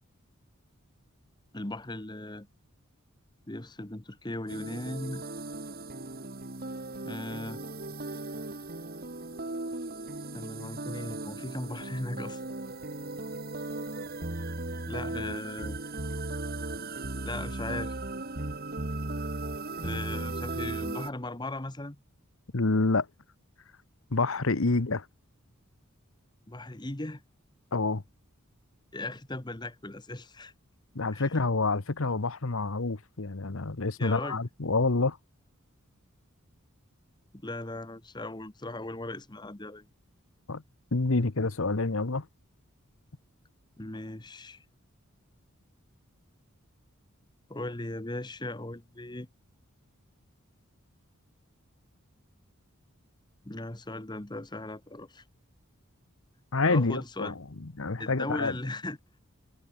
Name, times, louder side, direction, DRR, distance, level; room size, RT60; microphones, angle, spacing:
voice 1, 1.5-2.5 3.5-5.2 7.0-7.6 10.3-12.4 14.9-15.8 17.2-18.0 19.8-22.0 26.5-27.2 28.9-30.5 31.1-31.3 34.0-34.4 37.4-39.9 43.8-44.6 47.5-49.3 53.4-55.2 56.7-57.4 58.0-59.0, left 2 dB, 20° left, 1.2 m, -38 dB
sound 1, 4.5-21.1, right 2 dB, 45° right, 2.0 m, -37 dB
voice 2, 22.5-23.1 24.1-25.1 27.7-28.0 30.9-35.2 40.5-40.6 40.9-42.2 56.5-57.3 57.6-58.5, left 3 dB, 70° left, 1.1 m, -27 dB
head